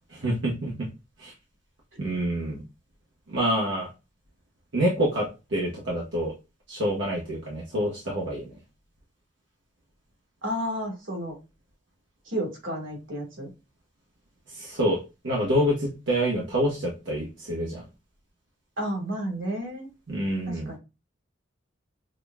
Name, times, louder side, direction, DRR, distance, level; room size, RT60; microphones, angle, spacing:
voice 1, 0.1-0.7 1.2-1.3 2.0-2.6 3.3-3.9 4.7-6.3 6.7-8.5 14.5-15.0 15.2-17.8 20.1-20.7, equal, 65° right, -4 dB, 1.0 m, -27 dB
voice 2, 10.4-11.4 12.3-13.5 18.8-19.9 20.5-20.8, equal, 85° right, 0 dB, 1.8 m, -31 dB
6.0 x 2.3 x 2.2 m, 0.27 s
head